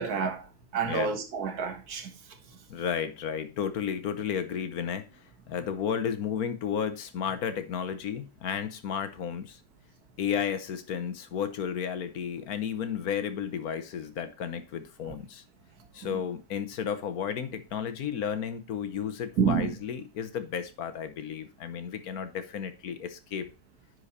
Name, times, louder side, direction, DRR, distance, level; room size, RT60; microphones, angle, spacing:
voice 1, 0.0-2.1 2.5-2.6 16.0-16.2 19.4-19.8, right 6 dB, 85° right, 1.8 m, -29 dB
voice 2, 2.7-5.1 5.5-9.6 10.2-15.4 15.9-23.5, left 8 dB, 75° left, 1.5 m, -33 dB
10.0 x 4.8 x 4.1 m
omnidirectional pair, 1.6 m